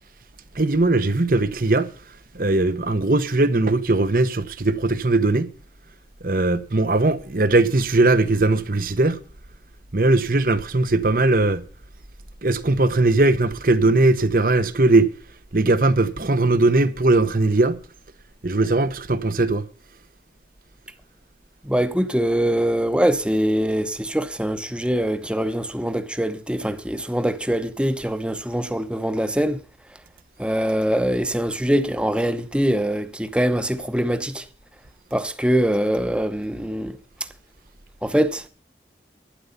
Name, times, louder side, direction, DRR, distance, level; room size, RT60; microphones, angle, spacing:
voice 1, 0.6-1.9 2.3-5.5 6.2-9.2 9.9-11.6 12.4-15.1 15.5-17.8 18.4-19.6, right 2 dB, 50° right, 1.0 m, -19 dB
voice 2, 21.6-29.6 30.4-34.4 35.1-37.0 38.0-38.4, equal, 5° right, 0.9 m, -23 dB
11.5 x 10.0 x 5.6 m
head